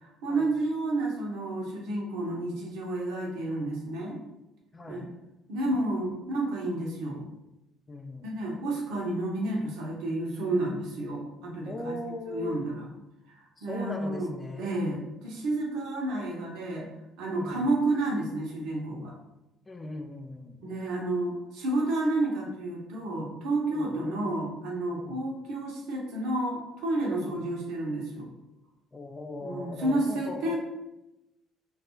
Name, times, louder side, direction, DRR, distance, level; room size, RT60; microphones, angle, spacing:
voice 1, 0.0-4.2 4.9-5.1 5.5-7.2 8.2-12.0 12.3-12.9 13.6-14.3 14.6-16.9 17.2-19.2 20.6-28.3 29.4-30.6, right 2 dB, 75° right, -1 dB, 0.7 m, -30 dB
voice 2, 4.7-5.1 7.9-8.3 11.7-12.6 13.6-14.7 17.3-17.6 19.7-20.6 23.8-23.9 25.0-25.2 27.0-27.4 28.9-30.6, left 2 dB, 25° left, 6 dB, 0.4 m, -39 dB
2.3 x 2.3 x 2.9 m, 0.93 s
hypercardioid pair, 60°, 0 cm